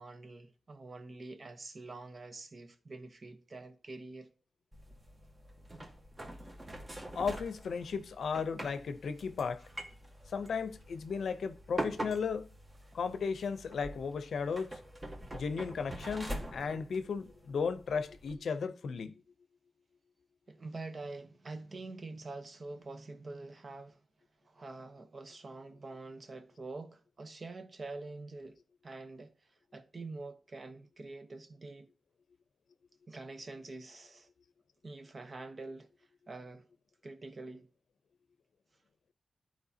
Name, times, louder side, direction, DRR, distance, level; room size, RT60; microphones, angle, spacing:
voice 1, 0.0-4.3 12.9-13.0 20.5-24.0 24.4-31.9 33.1-34.3 34.8-36.6 37.0-37.7, right 3 dB, 40° right, 0.9 m, -46 dB
sound 1, 4.7-18.3, right 1 dB, 25° right, 1.3 m, -44 dB
voice 2, 7.1-9.6 10.3-12.5 12.9-14.8 15.3-19.1, left 5 dB, 85° left, 0.6 m, -35 dB
13.5 x 4.6 x 2.8 m
wide cardioid pair, 135°, 0 cm